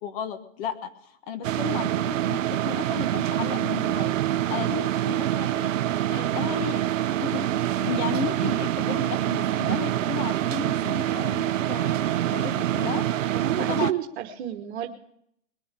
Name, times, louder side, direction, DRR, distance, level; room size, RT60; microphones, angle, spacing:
voice 1, 0.0-4.2 4.5-5.7 6.1-6.8 7.2-13.0 13.6-13.9, left 7 dB, 45° left, 9 dB, 1.4 m, -34 dB
sound 1, 1.4-13.9, right 12 dB, 90° right, 0.6 m, -26 dB
sound 2, 7.5-13.3, right 5 dB, 5° left, 4.2 m, -51 dB
voice 2, 13.3-14.9, right 11 dB, 60° right, 6 dB, 1.4 m, -30 dB
21.0 x 7.2 x 9.1 m, 0.71 s
hypercardioid pair, 130°, 37 cm